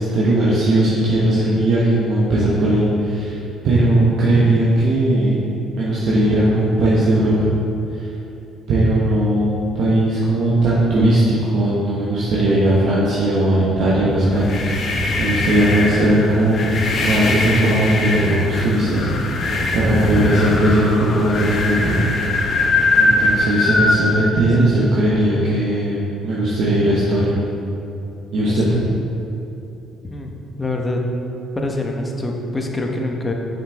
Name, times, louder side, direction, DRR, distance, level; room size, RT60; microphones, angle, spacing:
voice 1, 0.0-3.4 3.6-5.4 5.8-7.5 7.9-8.1 8.7-22.1 23.0-27.4 28.3-28.8, right 1 dB, 65° right, -7 dB, 1.1 m, -18 dB
sound 1, 14.2-24.0, left 2 dB, 50° left, 0.9 m, -21 dB
voice 2, 30.0-31.0 31.5-33.3, left 2 dB, 25° left, 1 dB, 1.1 m, -25 dB
7.1 x 5.7 x 3.6 m, 2.9 s
hypercardioid pair, 55°, 0 cm